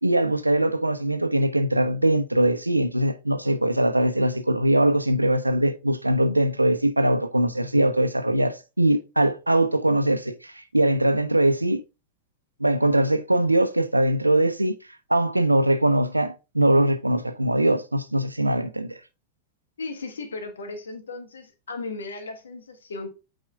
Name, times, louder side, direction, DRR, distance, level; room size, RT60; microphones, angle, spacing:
voice 1, 0.0-11.8 12.6-14.7 15.1-19.0, right 1 dB, 85° right, 0.7 m, -22 dB
voice 2, 19.8-23.1, left 3 dB, 70° left, 1.5 m, -36 dB
8.7 x 5.3 x 2.4 m
figure-of-eight pair, 90°, 0 cm